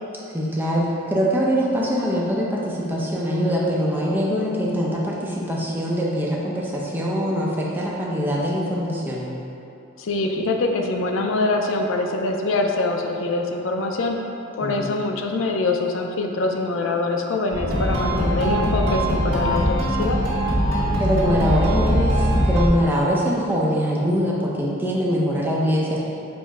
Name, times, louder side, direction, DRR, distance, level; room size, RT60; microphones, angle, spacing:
voice 1, 0.3-9.3 14.6-15.0 18.1-18.5 21.0-26.1, equal, 10° right, -5 dB, 0.5 m, -23 dB
voice 2, 10.0-14.2 14.6-20.2, left 2 dB, 65° left, 3 dB, 0.4 m, -24 dB
sound 1, 17.5-22.7, equal, 80° right, 1.2 m, -21 dB
5.3 x 2.1 x 4.7 m, 2.9 s
head